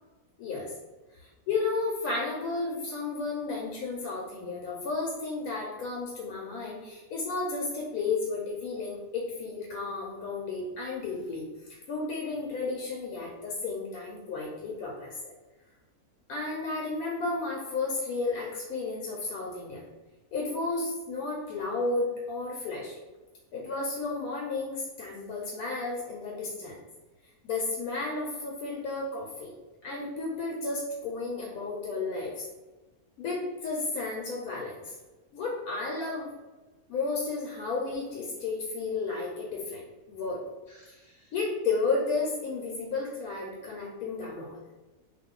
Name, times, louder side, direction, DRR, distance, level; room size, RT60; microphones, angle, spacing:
voice 1, 1.2-15.3 16.3-19.8 20.3-22.9 23.5-26.8 27.4-29.5 29.8-32.5 33.2-34.9 35.3-36.3 36.9-39.8 40.1-40.4 40.7-44.6, left 3 dB, 80° left, -2 dB, 1.0 m, -33 dB
2.5 x 2.4 x 3.6 m, 1.2 s
omnidirectional pair, 1.6 m